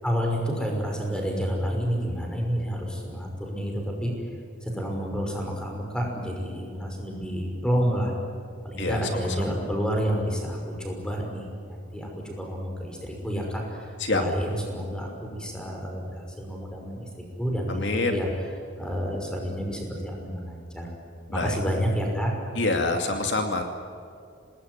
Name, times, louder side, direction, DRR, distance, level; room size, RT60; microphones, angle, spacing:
voice 1, 0.0-4.1 4.6-8.1 8.6-18.3 18.8-20.9 21.3-22.3, equal, 5° left, 1 dB, 5.9 m, -29 dB
voice 2, 17.7-18.2 21.3-21.6 22.6-23.6, left 2 dB, 60° left, 4 dB, 2.5 m, -26 dB
27.5 x 19.5 x 9.7 m, 2.5 s
head